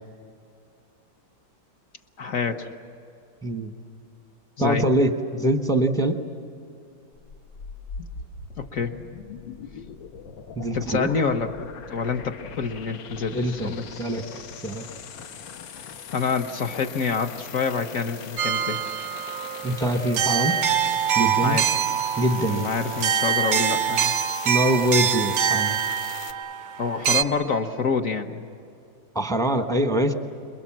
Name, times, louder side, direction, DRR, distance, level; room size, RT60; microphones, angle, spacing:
voice 1, 2.2-2.7 4.6-4.9 8.6-9.0 10.7-13.8 16.1-18.8 19.7-19.8 21.4-21.8 22.4-24.1 26.8-28.5, left 5 dB, 50° left, 6 dB, 1.1 m, -27 dB
voice 2, 4.6-6.2 10.6-11.1 13.3-13.7 14.0-14.2 14.6-14.8 19.6-20.6 21.1-21.6 22.2-22.7 24.4-25.8 29.1-30.1, right 1 dB, 5° left, 6 dB, 0.7 m, -23 dB
sound 1, 7.1-26.3, left 6 dB, 75° left, 1.6 m, -41 dB
sound 2, 18.4-27.2, right 8 dB, 80° right, 0.6 m, -25 dB
27.5 x 22.0 x 7.4 m, 2.5 s
omnidirectional pair, 2.2 m